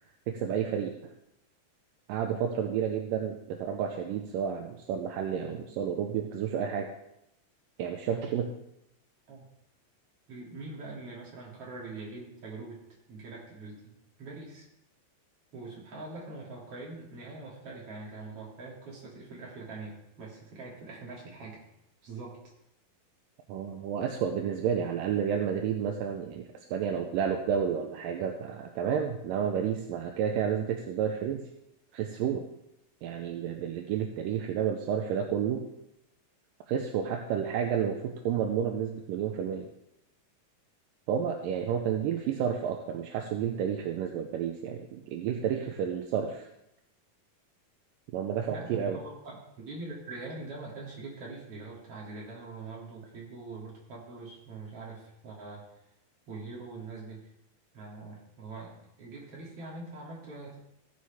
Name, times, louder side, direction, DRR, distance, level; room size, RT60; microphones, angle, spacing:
voice 1, 0.3-1.0 2.1-6.9 7.8-8.5 23.5-31.5 31.9-32.4 33.0-35.7 36.7-39.7 41.1-46.5 48.1-49.0, right 8 dB, 80° right, 3 dB, 2.2 m, -31 dB
voice 2, 8.1-8.5 9.3-9.5 10.3-14.7 15.5-21.6 22.0-22.4 48.5-55.8 56.3-57.2 57.7-60.6, right 3 dB, 40° right, -4 dB, 3.5 m, -43 dB
17.0 x 6.5 x 3.6 m, 0.82 s
omnidirectional pair, 4.3 m